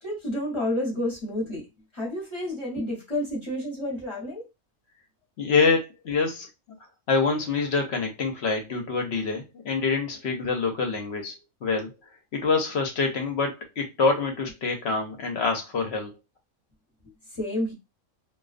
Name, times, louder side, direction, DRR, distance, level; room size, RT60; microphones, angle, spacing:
voice 1, 0.0-1.6 1.9-4.4 17.3-17.7, left 1 dB, 25° left, 0.8 m, -30 dB
voice 2, 5.4-6.5 7.1-11.3 11.6-11.9 12.3-16.1, left 4 dB, 60° left, 0.8 m, -26 dB
2.3 x 2.3 x 2.4 m
omnidirectional pair, 1.5 m